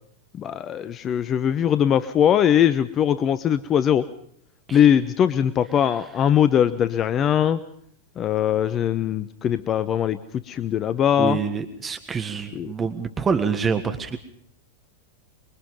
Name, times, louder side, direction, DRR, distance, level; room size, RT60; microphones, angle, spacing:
voice 1, 0.3-4.1 4.7-7.6 8.2-10.2 10.5-11.4 12.5-12.7, left 9 dB, 30° left, 13 dB, 0.8 m, -21 dB
voice 2, 11.2-14.2, right 5 dB, 20° right, 9 dB, 1.6 m, -26 dB
25.0 x 23.0 x 5.4 m, 0.64 s
figure-of-eight pair, 90°, 0 cm